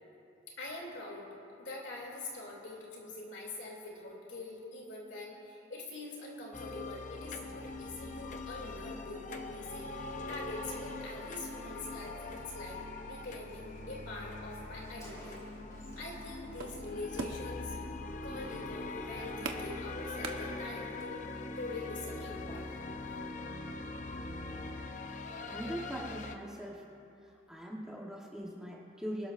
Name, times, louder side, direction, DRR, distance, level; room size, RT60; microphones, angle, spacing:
voice 1, 0.6-1.3 1.6-15.4 16.0-17.8 18.2-22.6, left 2 dB, 60° left, -2 dB, 2.8 m, -44 dB
sound 1, 6.5-26.4, left 2 dB, 40° left, 0.6 m, -42 dB
Car, 13.0-13.1 13.3-16.2 16.5-16.8, equal, 15° left, 3.0 m, -57 dB
sound 2, 16.3-21.0, right 3 dB, 70° right, 0.9 m, -44 dB
voice 2, 25.5-26.8 27.5-29.3, equal, 5° right, -4 dB, 1.0 m, -41 dB
25.0 x 12.0 x 2.5 m, 2.7 s
head